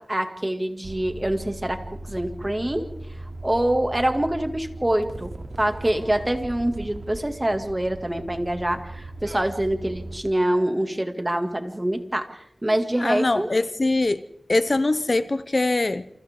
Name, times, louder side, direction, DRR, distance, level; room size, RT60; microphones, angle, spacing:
voice 1, 0.0-1.8 2.1-2.9 3.4-5.3 5.6-13.5, right 1 dB, 20° right, 2.3 m, -25 dB
sound 1, 0.8-10.2, right 2 dB, 85° right, 2.7 m, -38 dB
voice 2, 13.0-14.2 14.5-16.1, left 2 dB, 50° left, 0.7 m, -22 dB
29.0 x 28.0 x 3.7 m
wide cardioid pair, 70°, 0 cm